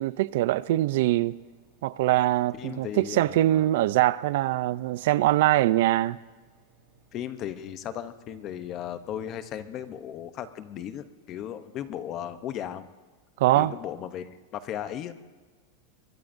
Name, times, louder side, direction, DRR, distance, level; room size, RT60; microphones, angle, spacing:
voice 1, 0.0-1.3 1.8-6.2 13.4-13.7, right 15 dB, 55° right, 0.4 m, -23 dB
Engine, 1.0-10.0, right 5 dB, 40° right, 3.7 m, -63 dB
voice 2, 2.6-3.7 7.1-12.9 13.5-15.2, left 10 dB, 25° left, 0.7 m, -36 dB
23.5 x 22.0 x 2.6 m
supercardioid pair, 175°, 0 cm